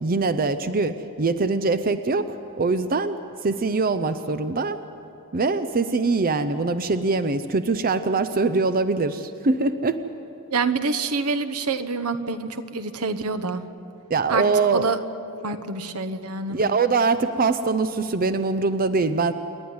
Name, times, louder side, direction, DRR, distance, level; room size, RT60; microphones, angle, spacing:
voice 1, 0.0-4.8 5.3-10.0 14.1-14.9 16.5-19.3, right 3 dB, 40° right, 11 dB, 0.6 m, -23 dB
voice 2, 10.5-13.6 14.3-14.4 14.7-15.0 15.4-16.6, right 4 dB, 85° right, 9 dB, 1.1 m, -26 dB
28.5 x 11.0 x 9.6 m, 2.7 s
head